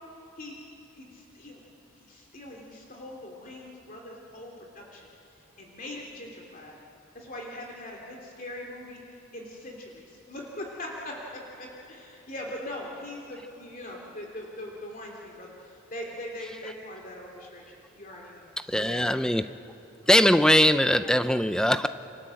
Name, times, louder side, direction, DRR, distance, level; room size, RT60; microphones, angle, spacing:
voice 1, 0.9-1.7 1.9-6.7 7.1-9.0 9.3-19.0, left 1 dB, 40° left, -1 dB, 3.1 m, -41 dB
voice 2, 18.6-19.5 20.1-21.9, left 1 dB, 5° left, 10 dB, 0.6 m, -21 dB
29.5 x 25.0 x 7.8 m, 2.8 s
head